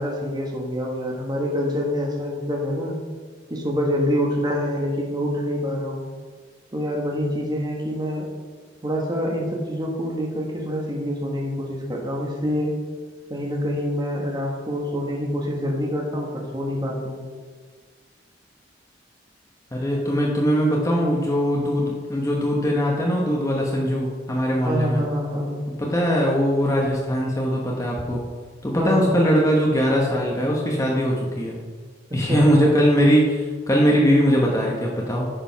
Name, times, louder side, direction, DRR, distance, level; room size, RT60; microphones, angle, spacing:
voice 1, 0.0-2.9 3.5-6.1 6.7-8.3 8.8-12.7 13.3-17.2 24.6-25.6 28.8-29.1 32.3-32.5, equal, 25° right, -1 dB, 1.4 m, -26 dB
voice 2, 19.7-25.0 25.8-28.2 28.6-31.6 32.1-35.3, equal, 20° left, -3 dB, 1.1 m, -21 dB
10.0 x 5.1 x 5.8 m, 1.5 s
head